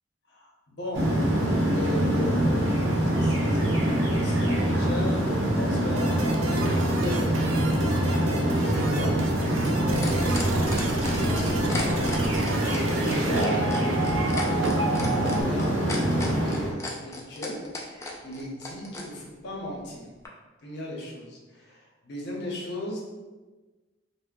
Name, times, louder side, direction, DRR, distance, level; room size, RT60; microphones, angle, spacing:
voice 1, 0.3-7.3 8.2-9.2 9.8-12.1 12.5-20.1 20.6-23.0, left 1 dB, 60° left, -2 dB, 0.7 m, -37 dB
sound 1, 0.9-16.7, right 1 dB, 65° right, 0.8 m, -25 dB
sound 2, 6.0-15.4, right 2 dB, 85° right, 0.4 m, -32 dB
sound 3, 9.6-19.1 20.2-20.3, left 3 dB, 15° left, 0.3 m, -36 dB
2.8 x 2.1 x 3.6 m, 1.2 s
head